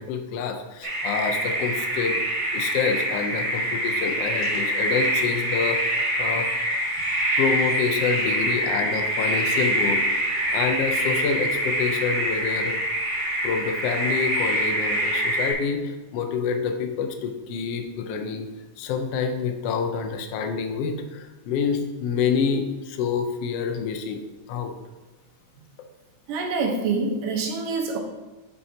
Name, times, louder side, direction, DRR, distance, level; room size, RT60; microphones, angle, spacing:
voice 1, 0.0-2.2 2.5-5.8 6.2-6.5 7.4-12.8 13.4-18.5 18.8-24.2 24.5-24.7, left 6 dB, 85° left, 5 dB, 1.4 m, -27 dB
sound 1, 0.8-15.5, right 1 dB, 45° right, 3.4 m, -25 dB
voice 2, 26.3-28.0, right 4 dB, 80° right, 2 dB, 2.7 m, -26 dB
8.3 x 7.3 x 2.9 m, 1.2 s
omnidirectional pair, 3.7 m